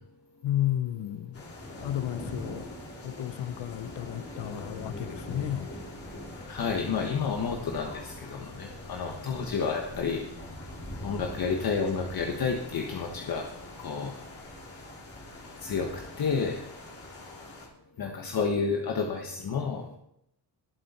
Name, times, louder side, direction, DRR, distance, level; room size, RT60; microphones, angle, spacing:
voice 1, 0.4-1.4 1.8-2.7 3.0-5.7, left 12 dB, 75° left, 0.7 m, -32 dB
sound 1, 1.3-17.7, left 1 dB, 30° left, 3.1 m, -43 dB
voice 2, 6.5-10.2 11.0-13.5 13.8-14.1 15.6-16.7 18.0-19.9, left 5 dB, 55° left, 1.3 m, -30 dB
19.5 x 7.6 x 4.3 m
wide cardioid pair, 160°, 43 cm